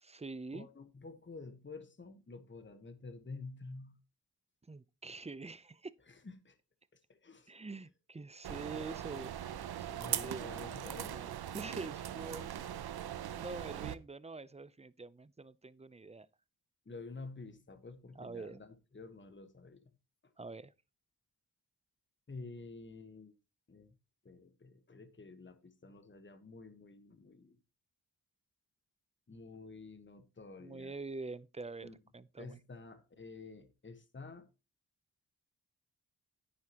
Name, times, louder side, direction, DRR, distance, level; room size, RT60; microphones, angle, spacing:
voice 1, 0.0-0.7 4.7-5.9 7.5-9.5 9.8-10.7 10.9-12.9 13.3-16.3 18.2-18.6 20.4-20.7 30.6-32.6, right 3 dB, 15° right, 0.5 m, -46 dB
voice 2, 0.5-4.0 6.1-6.6 6.9-7.5 9.4-9.6 10.0-11.2 16.8-19.8 20.2-20.3 22.3-23.3 23.7-23.9 24.2-27.6 29.3-31.0 31.8-31.9 32.4-34.5, left 3 dB, 30° left, 1.3 m, -50 dB
sound 1, 8.4-14.0, right 10 dB, 70° right, 0.7 m, -40 dB
9.7 x 9.5 x 2.9 m
cardioid pair, 60°, 40 cm